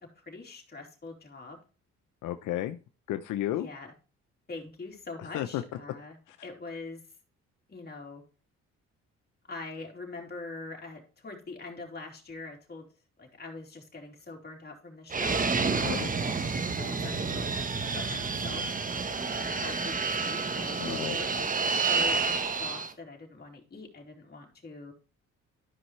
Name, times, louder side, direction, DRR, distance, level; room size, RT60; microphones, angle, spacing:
voice 1, 0.2-1.6 3.6-3.9 4.5-6.2 6.4-7.0 7.7-8.2 9.5-12.9 13.2-16.1 16.8-17.5 17.9-24.9, left 3 dB, 35° left, 1 dB, 3.6 m, -43 dB
voice 2, 2.2-2.8 3.1-3.7 5.2-5.6 6.3-6.4 15.8-16.1 20.8-21.2, left 13 dB, 85° left, 8 dB, 0.7 m, -33 dB
Fixed-wing aircraft airplane, 15.1-22.9, right 4 dB, 25° right, 1.0 m, -29 dB
13.0 x 5.5 x 3.2 m, 0.34 s
cardioid pair, 90°, 30 cm